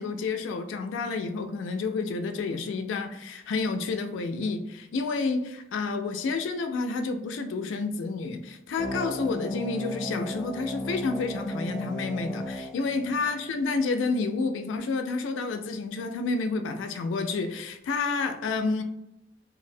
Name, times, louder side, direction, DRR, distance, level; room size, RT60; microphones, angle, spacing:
voice 1, 0.0-18.8, left 4 dB, 85° left, 7 dB, 0.3 m, -30 dB
sound 1, 8.8-13.8, left 1 dB, ahead, 0.5 m, -36 dB
2.5 x 2.0 x 2.5 m, 0.85 s
head